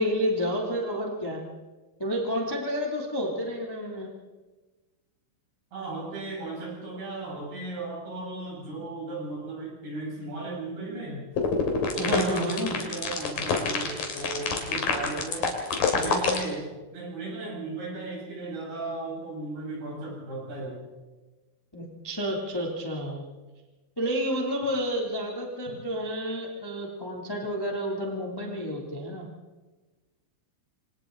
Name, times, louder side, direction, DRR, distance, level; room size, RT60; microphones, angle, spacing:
voice 1, 0.0-1.4 2.0-4.1 11.9-12.8 21.7-23.2 24.0-29.3, equal, 5° left, -2 dB, 1.8 m, -30 dB
voice 2, 5.7-11.2 11.9-15.5 15.9-16.7 16.9-20.8, right 2 dB, 50° right, -4 dB, 9.8 m, -35 dB
sound 1, 11.4-16.4, left 5 dB, 50° left, 4.2 m, -26 dB
28.0 x 26.5 x 4.1 m, 1.2 s
omnidirectional pair, 5.9 m